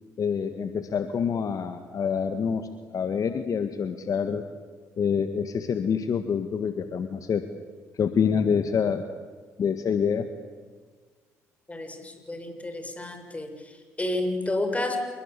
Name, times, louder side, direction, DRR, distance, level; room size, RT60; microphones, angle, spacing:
voice 1, 0.2-4.4 5.0-7.4 7.9-9.0 9.6-10.3, left 6 dB, 55° left, 9 dB, 1.8 m, -26 dB
voice 2, 11.7-15.0, left 2 dB, 20° left, 6 dB, 6.7 m, -31 dB
28.0 x 21.5 x 8.4 m, 1.5 s
supercardioid pair, 60°, 7 cm